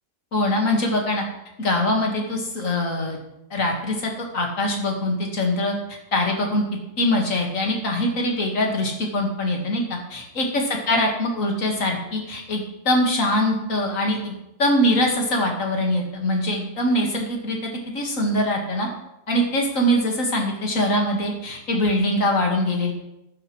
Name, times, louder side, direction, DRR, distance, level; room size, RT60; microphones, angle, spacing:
voice 1, 0.3-1.2 1.6-3.2 3.5-6.6 7.0-14.3 14.6-18.9 19.3-22.9, left 1 dB, 60° left, 1 dB, 2.2 m, -23 dB
14.5 x 9.8 x 3.2 m, 0.88 s
omnidirectional pair, 1.6 m